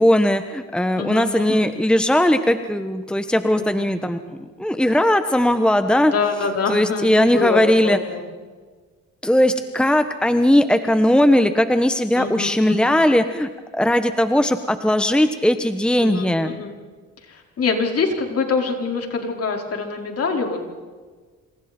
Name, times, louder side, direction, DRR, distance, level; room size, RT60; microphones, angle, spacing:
voice 1, 0.0-6.1 6.7-8.0 9.2-16.5, left 1 dB, 5° left, 9 dB, 1.3 m, -18 dB
voice 2, 1.0-1.6 3.5-4.2 6.1-8.3 12.2-12.9 16.0-16.8 17.2-20.6, left 4 dB, 50° left, 2 dB, 5.0 m, -25 dB
28.5 x 28.0 x 4.5 m, 1.4 s
cardioid pair, 90°, 30 cm